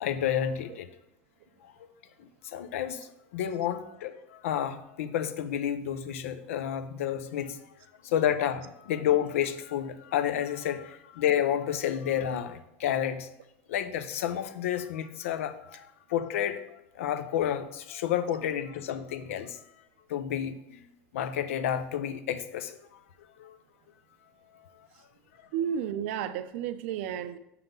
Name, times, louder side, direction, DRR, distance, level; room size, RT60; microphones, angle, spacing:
voice 1, 0.0-0.9 1.6-1.7 2.2-3.1 3.3-7.6 8.0-13.3 13.7-19.6 20.1-20.8 21.1-22.8 23.4-23.6, left 10 dB, 90° left, 10 dB, 0.7 m, -30 dB
voice 2, 25.5-27.4, right 9 dB, 70° right, 12 dB, 0.6 m, -32 dB
5.9 x 5.7 x 5.4 m, 0.85 s
supercardioid pair, 125°, 7 cm